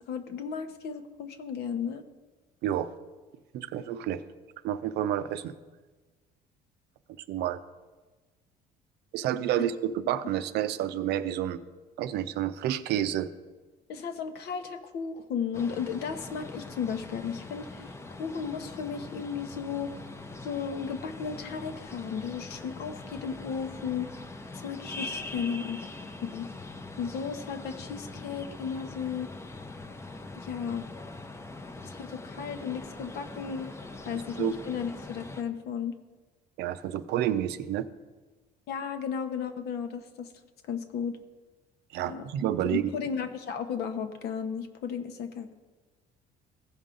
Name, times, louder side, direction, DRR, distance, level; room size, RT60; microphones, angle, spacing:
voice 1, 0.1-2.0 13.9-19.9 20.4-24.1 24.5-26.5 27.0-29.3 30.4-30.9 31.8-33.7 34.0-35.9 38.7-40.3 40.6-41.1 42.0-42.2 42.7-45.5, left 7 dB, 70° left, 8 dB, 0.9 m, -34 dB
voice 2, 2.6-2.9 3.5-4.2 4.6-5.5 7.3-7.6 9.1-11.6 12.0-13.3 34.4-34.5 36.6-37.9 41.9-42.9, right 11 dB, 80° right, 12 dB, 0.5 m, -29 dB
sound 1, 15.5-35.4, left 2 dB, 15° left, 0.6 m, -42 dB
15.5 x 5.4 x 3.8 m, 1.3 s
cardioid pair, 110°, 17 cm